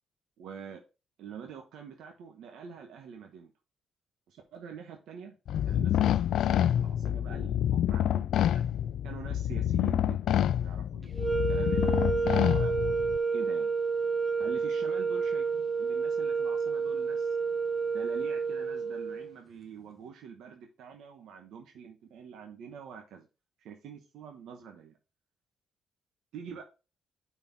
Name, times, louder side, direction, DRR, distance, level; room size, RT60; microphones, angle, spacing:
voice 1, 0.4-0.8 1.2-3.5 4.3-5.3 5.7-8.7 9.0-13.0 13.3-13.7 14.4-17.3 17.8-23.3 23.6-25.0 26.3-26.6, right 7 dB, 80° right, 3 dB, 1.1 m, -46 dB
sound 1, 5.5-13.2, left 11 dB, 75° left, 0.3 m, -27 dB
sound 2, 11.1-19.3, right 5 dB, 25° right, 0.7 m, -30 dB
5.4 x 4.4 x 5.8 m, 0.31 s
cardioid pair, 90°, 0 cm